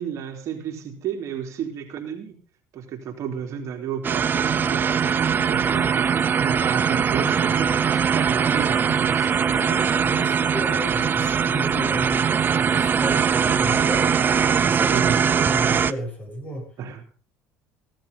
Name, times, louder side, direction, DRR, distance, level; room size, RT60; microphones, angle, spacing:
voice 1, 0.0-2.4 2.7-9.5 14.9-15.2 16.8-17.0, right 8 dB, 55° right, 2 dB, 3.4 m, -32 dB
sound 1, 4.0-15.9, right 7 dB, 30° right, 0.7 m, -21 dB
voice 2, 9.5-14.1 14.6-15.0 15.3-16.7, equal, 25° left, 2 dB, 7.5 m, -33 dB
16.5 x 11.5 x 5.4 m, 0.41 s
supercardioid pair, 100°, 6 cm